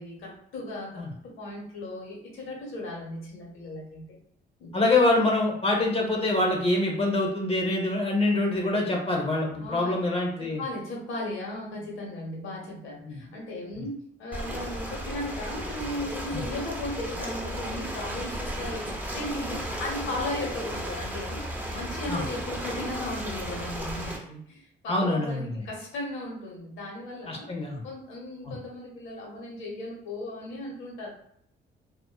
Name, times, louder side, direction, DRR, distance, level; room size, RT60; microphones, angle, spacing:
voice 1, 0.0-4.1 4.6-4.7 9.6-10.0 10.4-27.5 27.8-31.1, left 1 dB, 90° left, -2 dB, 1.0 m, -36 dB
voice 2, 4.7-10.6 13.0-13.2 22.1-22.2 24.9-25.6 27.3-27.8 28.5-28.6, left 2 dB, 30° left, 0 dB, 0.8 m, -25 dB
Ocean, 14.3-24.2, equal, 10° right, 0.5 m, -34 dB
2.4 x 2.3 x 2.3 m, 0.68 s
cardioid pair, 90°, 20 cm